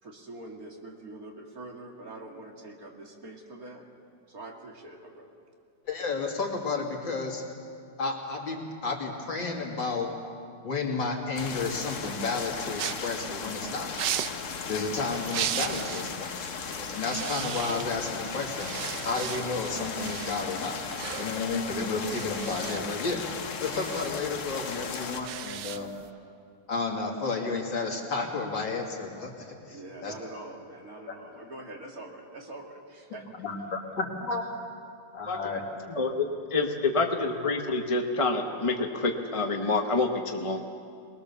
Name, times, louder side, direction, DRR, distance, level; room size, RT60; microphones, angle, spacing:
voice 1, 0.0-3.9 4.3-5.4 29.7-33.2, right 2 dB, 50° right, 0 dB, 2.7 m, -44 dB
voice 2, 5.9-7.4 8.0-10.2 10.6-13.9 14.7-16.5 16.8-18.7 19.0-20.8 21.2-23.3 23.6-25.9 26.7-30.1 31.0-31.1 33.4-34.5 35.1-35.6, left 4 dB, 85° left, 0 dB, 3.3 m, -32 dB
sound 1, 11.4-25.2, left 5 dB, 50° left, 1.2 m, -36 dB
sound 2, 12.8-16.1 16.4-16.7 17.0-18.1 18.5-26.1, right 10 dB, 70° right, 1.3 m, -37 dB
voice 3, 35.9-40.6, left 3 dB, 25° left, 3 dB, 0.9 m, -27 dB
23.5 x 20.5 x 7.0 m, 2.4 s
omnidirectional pair, 2.0 m